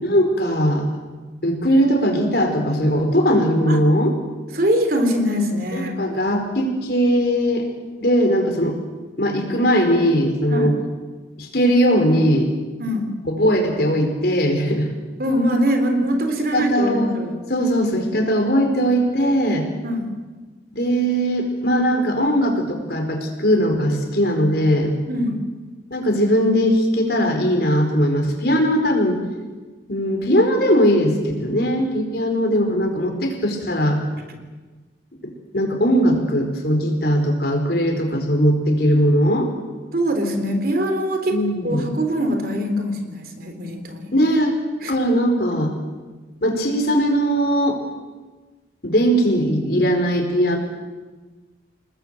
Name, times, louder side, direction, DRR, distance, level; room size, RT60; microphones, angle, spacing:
voice 1, 0.0-0.9 1.4-4.1 5.7-7.6 8.0-8.8 9.2-10.7 11.4-12.5 13.3-14.9 16.5-17.2 17.5-19.7 20.7-24.9 25.9-29.2 29.9-34.0 35.2-39.5 41.3-41.9 44.1-44.5 44.9-45.7 46.4-47.8 48.8-50.6, equal, 55° left, 4 dB, 4.7 m, -19 dB
voice 2, 4.5-5.9 10.5-10.7 12.8-13.1 15.2-17.4 19.8-20.1 25.1-25.4 34.3-34.4 39.9-44.1 44.8-44.9, equal, 50° right, 6 dB, 3.7 m, -23 dB
28.5 x 20.0 x 7.7 m, 1.3 s
head